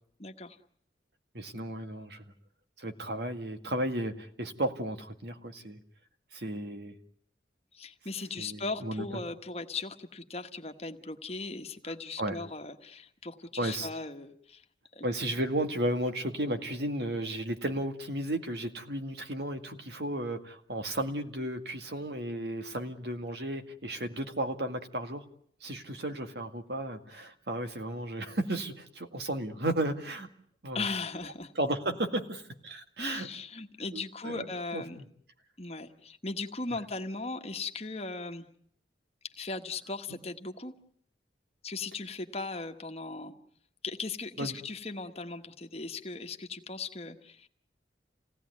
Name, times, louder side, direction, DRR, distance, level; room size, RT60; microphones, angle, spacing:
voice 1, 0.2-0.6 7.7-14.6 14.9-15.1 30.7-31.5 33.0-35.0 35.6-38.4 39.4-40.7 41.6-43.3 43.8-47.5, left 3 dB, 35° left, 5 dB, 1.3 m, -38 dB
voice 2, 1.3-2.2 2.8-5.8 6.3-7.0 8.4-9.0 12.2-12.4 13.6-13.9 15.0-25.2 25.6-30.3 30.6-30.9 31.6-33.3 33.9-34.5 34.7-35.1 44.4-44.5, right 1 dB, 65° right, 6 dB, 2.1 m, -34 dB
28.0 x 17.5 x 9.5 m, 0.67 s
head